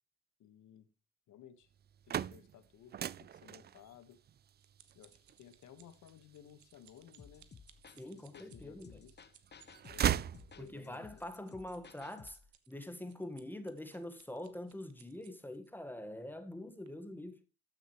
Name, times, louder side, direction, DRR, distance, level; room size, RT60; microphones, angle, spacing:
voice 1, 0.4-0.9 1.3-1.7 2.1-4.2 4.9-7.5 7.9-9.2 9.9-10.3 10.5-11.2, left 9 dB, 75° left, 1.4 m, -58 dB
sound 1, 1.8-7.7 8.3-9.1 9.4-11.0, right 10 dB, 35° right, 0.4 m, -38 dB
sound 2, 4.0-15.7 16.3-16.5 16.9-17.0, right 10 dB, 70° right, 1.3 m, -66 dB
sound 3, 7.2-12.5, left 5 dB, 35° left, 1.0 m, -56 dB
voice 2, 8.0-9.0 10.6-12.4 12.7-17.4, left 1 dB, 5° left, 1.5 m, -44 dB
13.0 x 6.5 x 3.1 m
cardioid pair, 90°, 30 cm